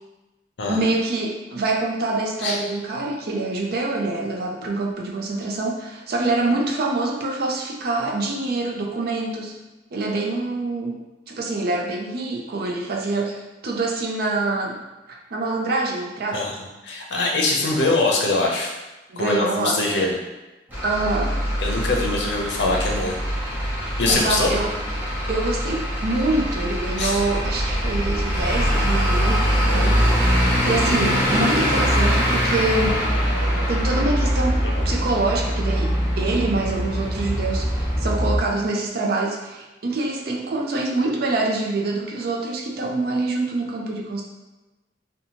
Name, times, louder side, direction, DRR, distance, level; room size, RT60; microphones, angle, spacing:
voice 1, 0.7-9.6 9.9-14.8 15.3-16.6 19.1-20.0 20.8-21.4 24.1-24.7 25.3-30.0 30.6-33.1 33.7-44.2, right 2 dB, 60° right, 0 dB, 0.5 m, -25 dB
voice 2, 16.3-18.7 19.2-20.2 21.6-23.2 24.0-24.5 27.0-27.2, left 2 dB, 75° left, -1 dB, 0.6 m, -23 dB
Truck / Idling, 20.7-38.4, equal, 10° right, 0.7 m, -22 dB
2.7 x 2.2 x 2.9 m, 1.1 s
head